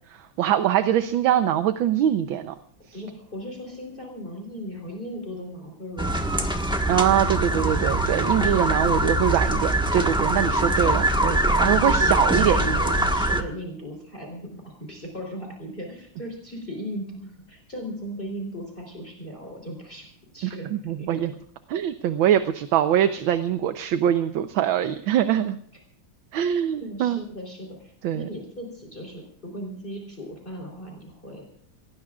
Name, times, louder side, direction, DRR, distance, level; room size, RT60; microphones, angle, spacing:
voice 1, 0.1-2.5 6.9-12.9 20.4-21.3 21.7-25.6 26.3-27.2 28.0-28.3, right 10 dB, 70° right, 9 dB, 1.5 m, -23 dB
voice 2, 2.9-6.5 8.4-8.7 10.9-11.0 11.5-21.2 26.8-31.4, equal, 25° left, 1 dB, 3.9 m, -37 dB
sound 1, 6.0-13.4, right 1 dB, 5° right, 1.0 m, -23 dB
24.5 x 19.0 x 2.5 m, 0.64 s
omnidirectional pair, 2.4 m